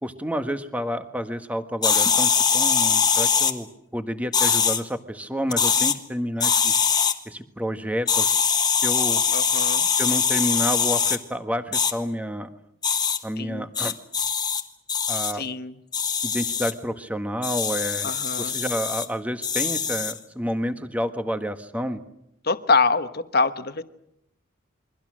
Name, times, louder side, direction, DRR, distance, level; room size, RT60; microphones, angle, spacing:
voice 1, 0.0-3.7 3.9-6.7 7.2-8.6 8.8-9.2 10.0-12.5 13.2-13.9 15.1-15.4 16.2-18.1 18.4-22.0, equal, 5° right, 9 dB, 1.4 m, -29 dB
sound 1, 1.8-3.5 4.3-4.8 5.5-5.9 6.4-7.1 8.1-11.2 11.7-11.9 12.8-13.2 13.7-14.6 14.9-15.3 15.9-16.7 17.4-19.0 19.4-20.2, left 6 dB, 20° left, 1.5 m, -22 dB
voice 2, 9.3-9.9 13.4-13.6 15.3-15.7 18.0-18.6 22.4-23.8, left 4 dB, 50° left, 11 dB, 1.3 m, -24 dB
28.5 x 23.5 x 6.4 m, 0.79 s
head